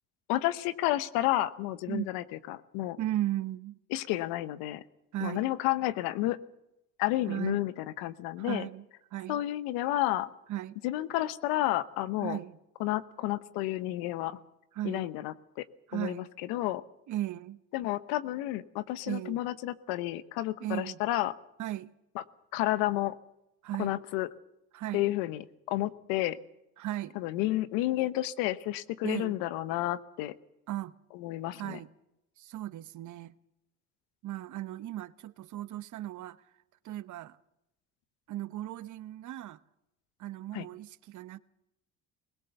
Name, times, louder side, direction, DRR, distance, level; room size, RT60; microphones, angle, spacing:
voice 1, 0.3-3.0 3.9-4.8 5.2-6.4 7.0-8.7 9.3-10.3 10.8-12.4 12.8-14.4 14.8-15.6 15.9-16.8 17.7-21.3 22.1-22.2 22.5-23.2 23.8-24.3 24.9-26.4 27.1-30.3 31.1-31.8 40.5-40.7, left 15 dB, 85° left, 0.9 m, -31 dB
voice 2, 3.0-3.8 5.1-5.5 7.3-7.7 8.4-8.9 9.1-9.4 10.5-10.8 12.2-12.6 14.7-15.1 15.9-16.3 17.1-17.6 19.1-19.4 20.6-21.0 21.6-21.9 23.6-23.9 24.7-25.1 26.8-27.2 29.0-29.4 30.7-30.9 31.6-31.9 32.4-33.3 34.2-36.4 36.8-37.4 38.3-39.6 40.2-41.4, right 14 dB, 60° right, 0.9 m, -36 dB
20.5 x 18.5 x 6.9 m
supercardioid pair, 70°, 34 cm